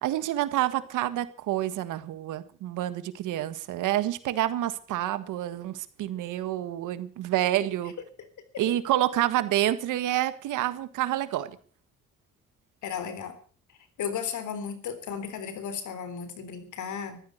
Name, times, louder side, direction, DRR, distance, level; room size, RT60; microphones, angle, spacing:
voice 1, 0.0-7.9 8.6-11.6, right 13 dB, 90° right, 13 dB, 1.7 m, -28 dB
voice 2, 12.8-13.4 14.0-17.2, left 7 dB, 75° left, 11 dB, 3.7 m, -34 dB
14.5 x 13.0 x 6.7 m, 0.43 s
cardioid pair, 90°, 30 cm